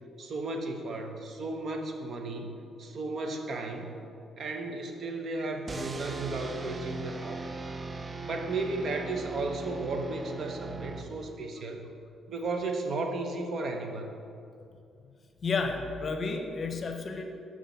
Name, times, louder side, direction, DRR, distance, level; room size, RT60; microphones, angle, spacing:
voice 1, 0.2-4.0 4.4-7.4 8.2-11.9 12.3-14.2, right 3 dB, 55° right, 4 dB, 0.8 m, -34 dB
sound 1, 5.7-11.5, right 3 dB, 30° right, 0.4 m, -39 dB
voice 2, 15.4-17.2, left 4 dB, 45° left, 5 dB, 0.8 m, -31 dB
6.1 x 6.0 x 5.5 m, 2.5 s
cardioid pair, 90°, 0 cm